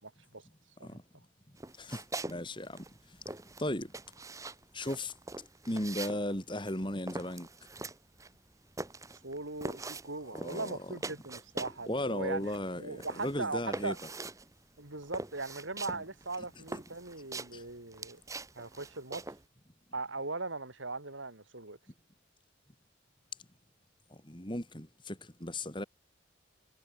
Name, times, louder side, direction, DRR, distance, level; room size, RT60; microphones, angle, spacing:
voice 1, 0.0-0.4 0.8-1.0 9.2-14.0 14.8-18.2 18.5-19.2 19.9-21.8, right 3 dB, 80° right, 5.1 m, -39 dB
sound 1, 1.6-2.4 2.7-11.9 12.2-19.4, right 2 dB, 15° right, 1.1 m, -43 dB
voice 2, 1.8-2.9 3.6-3.9 4.7-5.1 5.7-7.5 10.3-10.8 11.9-14.0 17.5-17.6 24.1-25.9, left 1 dB, 25° left, 3.9 m, -36 dB
head